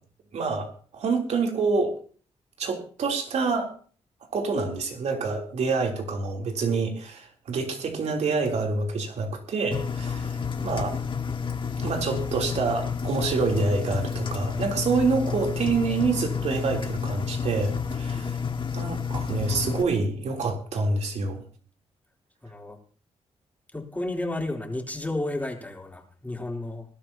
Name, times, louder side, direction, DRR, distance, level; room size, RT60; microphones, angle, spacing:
voice 1, 0.3-2.0 2.6-3.7 4.3-11.0 11.8-18.4 18.7-21.4, right 4 dB, 75° right, 1 dB, 3.4 m, -27 dB
Engine, 9.7-19.8, left 6 dB, 45° left, 1.7 m, -30 dB
voice 2, 22.4-22.8 23.7-26.9, left 2 dB, 15° left, 1 dB, 3.5 m, -32 dB
21.0 x 12.0 x 2.9 m, 0.44 s
cardioid pair, 65°, 12 cm